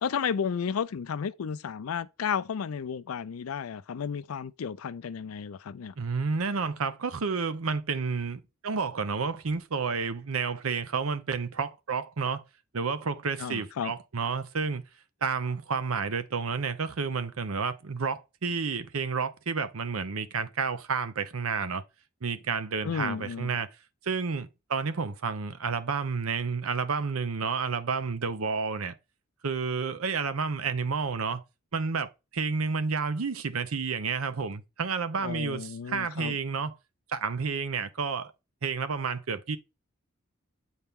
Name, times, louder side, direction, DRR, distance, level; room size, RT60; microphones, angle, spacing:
voice 1, 0.0-5.9 13.4-13.9 22.8-23.5 35.2-36.4, left 7 dB, 90° left, 0.4 m, -33 dB
voice 2, 6.0-12.4 12.7-14.8 15.2-21.8 22.2-23.7 24.0-28.9 29.4-31.4 31.7-36.7 37.1-38.3 38.6-39.6, right 5 dB, 90° right, 0.7 m, -30 dB
8.0 x 4.3 x 3.6 m
head